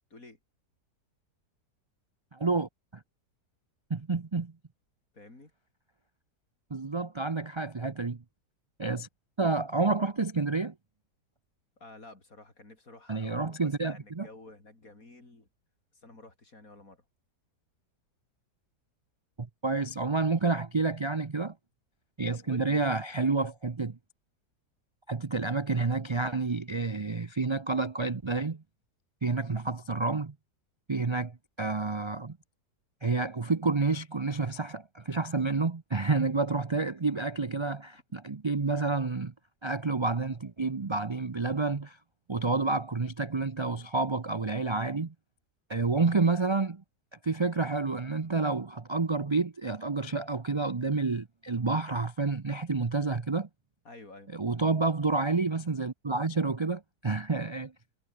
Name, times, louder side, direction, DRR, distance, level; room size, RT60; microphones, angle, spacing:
voice 1, 2.3-2.7 3.9-4.5 6.7-8.2 8.8-9.1 9.4-10.7 13.1-14.3 19.6-21.5 22.2-24.0 25.1-28.6 29.2-30.3 30.9-32.4 33.0-39.3 39.6-42.0 42.3-45.1 45.7-46.8 47.2-53.5 54.3-57.7, right 3 dB, 45° right, 0.3 m, -29 dB
voice 2, 5.1-5.5 11.8-15.5 15.9-17.0 22.3-22.8 53.9-54.3, left 2 dB, 55° left, 5.5 m, -51 dB
omnidirectional pair, 1.8 m